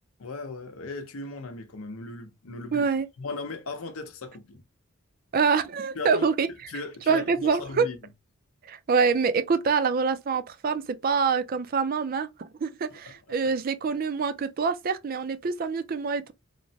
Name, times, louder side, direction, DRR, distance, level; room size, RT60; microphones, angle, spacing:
voice 1, 0.2-2.9 3.2-4.6 5.9-6.3 6.7-8.0 12.9-13.5, left 3 dB, 90° left, 0.7 m, -37 dB
voice 2, 2.7-3.1 5.3-6.5 7.1-7.9 8.7-12.3 12.6-16.3, right 5 dB, 45° right, 0.4 m, -25 dB
3.1 x 2.1 x 2.6 m
head